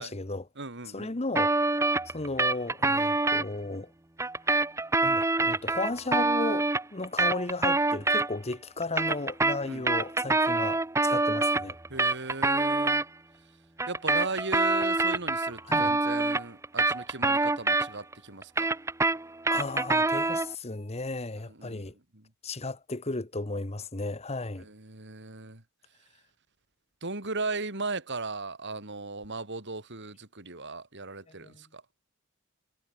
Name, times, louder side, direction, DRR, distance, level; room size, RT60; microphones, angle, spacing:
voice 1, 0.0-0.5 0.9-1.5 2.1-3.9 4.5-4.6 5.0-11.8 15.7-15.9 19.5-21.9 22.4-24.7 31.3-31.6, left 2 dB, 30° left, 1.2 m, -34 dB
voice 2, 0.6-1.2 9.6-9.9 11.9-13.0 13.9-18.7 21.5-21.8 22.1-22.2 24.6-25.6 27.0-31.8, right 3 dB, 55° right, 3.6 m, -37 dB
sound 1, 1.3-3.4 4.2-8.5 8.8-13.0 13.8-18.1 18.4-20.5, right 2 dB, 15° right, 0.8 m, -26 dB
head